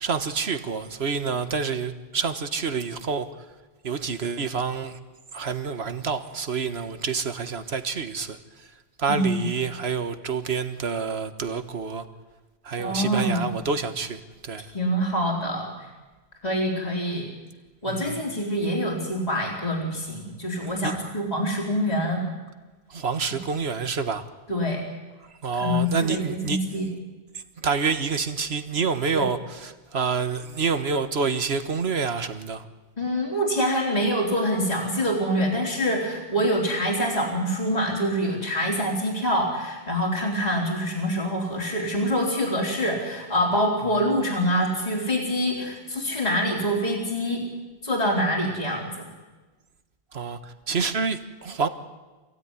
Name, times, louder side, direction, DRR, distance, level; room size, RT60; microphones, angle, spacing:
voice 1, 0.0-3.3 3.8-5.0 5.3-8.7 9.0-12.0 12.6-14.7 17.9-18.2 20.8-20.9 22.9-24.2 25.4-26.6 27.3-32.6 50.1-51.7, right 5 dB, 85° right, 1.6 m, -28 dB
voice 2, 9.1-9.5 12.8-13.4 14.7-15.9 16.4-17.3 17.8-22.2 24.5-24.8 25.5-26.9 29.1-29.2 33.0-47.4 47.8-49.1, equal, 40° left, 4.1 m, -25 dB
27.0 x 16.5 x 9.8 m
omnidirectional pair, 1.0 m